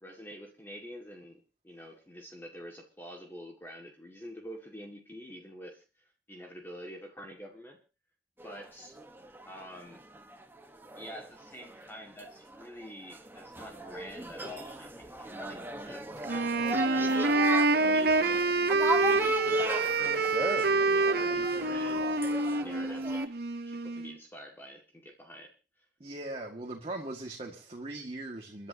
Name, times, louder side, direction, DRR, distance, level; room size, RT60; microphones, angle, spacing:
voice 1, 0.0-7.8 8.4-9.0 9.5-10.0 11.0-16.5 16.9-17.5 17.8-18.7 19.0-22.2 22.6-23.3 23.7-25.5, equal, 15° left, 2.1 m, -47 dB
sound 1, 8.4-23.3, right 1 dB, 15° right, 1.3 m, -37 dB
Wind instrument woodwind instrument, 16.2-24.1, right 3 dB, 65° right, 1.0 m, -27 dB
voice 2, 26.0-28.7, right 2 dB, 35° right, 2.1 m, -40 dB
30.0 x 11.0 x 2.9 m
head